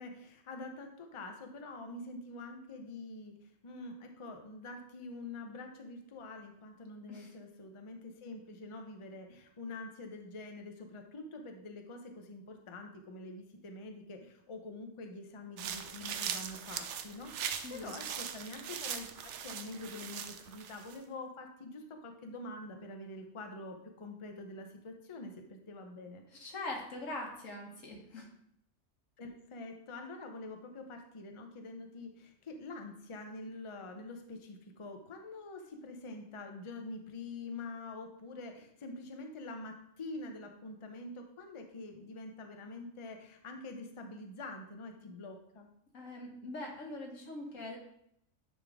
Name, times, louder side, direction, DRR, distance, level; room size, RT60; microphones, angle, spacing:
voice 1, 0.0-26.2 29.2-45.7, left 2 dB, 30° left, 4 dB, 0.7 m, -46 dB
sound 1, 15.6-21.0, right 8 dB, 70° right, 0.9 m, -40 dB
voice 2, 17.6-18.0 26.3-28.3 45.9-47.8, left 2 dB, 80° left, 1 dB, 1.7 m, -42 dB
10.0 x 3.7 x 3.5 m, 0.72 s
omnidirectional pair, 1.3 m